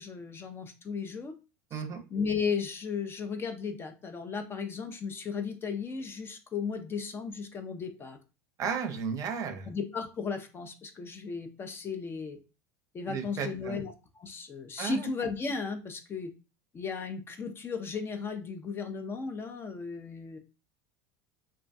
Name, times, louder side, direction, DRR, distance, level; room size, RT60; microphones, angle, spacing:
voice 1, 0.0-1.3 1.7-1.8 2.1-8.2 9.7-12.4 12.9-16.3 16.7-20.4, left 5 dB, 25° left, 6 dB, 0.4 m, -35 dB
voice 2, 8.6-9.7 13.1-13.8 14.8-15.1, right 6 dB, 40° right, 6 dB, 0.6 m, -34 dB
2.2 x 2.2 x 2.5 m, 0.31 s
hypercardioid pair, 95°, 9 cm